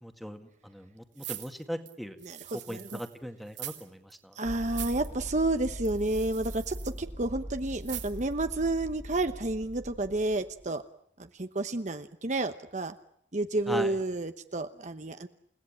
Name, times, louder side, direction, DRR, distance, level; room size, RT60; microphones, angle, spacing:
voice 1, 0.0-2.2 2.7-4.4 13.7-13.9, equal, ahead, 7 dB, 2.0 m, -39 dB
sound 1, 1.2-3.1 3.5-3.9 4.1-4.2 4.6-5.1 5.8-7.0 7.8-8.3 8.8-8.9, right 14 dB, 80° right, 3.2 m, -42 dB
voice 2, 2.2-3.0 4.3-10.8 11.2-12.9 13.3-15.3, right 2 dB, 40° right, 8 dB, 1.0 m, -30 dB
sound 2, 4.4-10.7, equal, 20° right, 1.8 m, -42 dB
29.5 x 17.5 x 8.9 m, 0.73 s
head